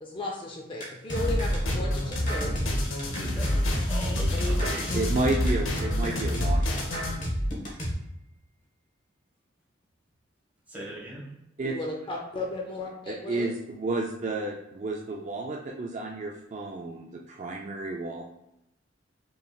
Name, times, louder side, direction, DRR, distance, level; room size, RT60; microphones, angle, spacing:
voice 1, 0.0-2.6 4.3-4.5 11.6-13.5, left 2 dB, 25° left, 0 dB, 0.5 m, -35 dB
sound 1, 0.8-7.9, equal, 40° left, 1.1 m, -30 dB
sound 2, 1.2-7.2, left 1 dB, 85° left, 0.7 m, -29 dB
voice 2, 3.1-5.1 7.7-7.9 10.7-11.3, right 1 dB, 10° right, -6 dB, 1.3 m, -40 dB
voice 3, 4.9-7.0 11.6-11.8 13.1-18.2, right 2 dB, 35° right, 0 dB, 0.3 m, -31 dB
5.4 x 3.2 x 2.3 m, 0.85 s
head